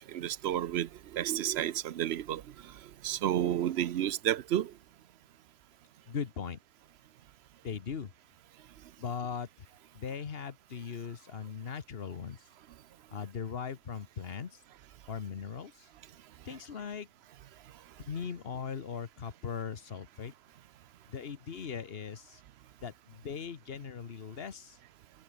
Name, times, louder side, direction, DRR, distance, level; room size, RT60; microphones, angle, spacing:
voice 1, 0.0-2.4 3.0-4.7, right 11 dB, 85° right, 0.9 m, -31 dB
voice 2, 6.1-6.6 7.6-8.1 9.0-9.7 9.9-12.4 13.1-14.6 15.1-15.9 16.4-17.1 18.0-20.3 21.1-22.4 22.8-24.8, left 6 dB, 70° left, 1.4 m, -39 dB
omnidirectional pair, 1.0 m